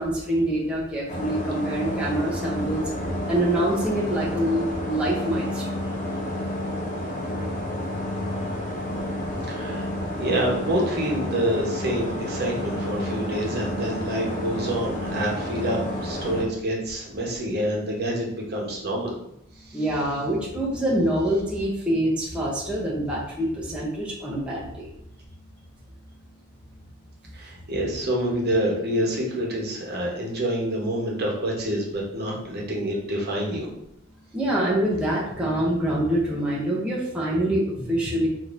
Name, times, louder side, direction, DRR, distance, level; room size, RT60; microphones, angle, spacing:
voice 1, 0.0-5.8 8.9-9.0 9.4-9.5 19.7-24.9 34.3-38.3, right 1 dB, 5° right, -6 dB, 0.6 m, -25 dB
sound 1, 1.1-16.4, left 1 dB, 35° left, 0.7 m, -30 dB
voice 2, 9.4-9.9 10.2-19.1 19.6-19.8 27.3-33.7, right 1 dB, 50° right, -2 dB, 0.9 m, -27 dB
5.0 x 2.7 x 2.5 m, 0.78 s
head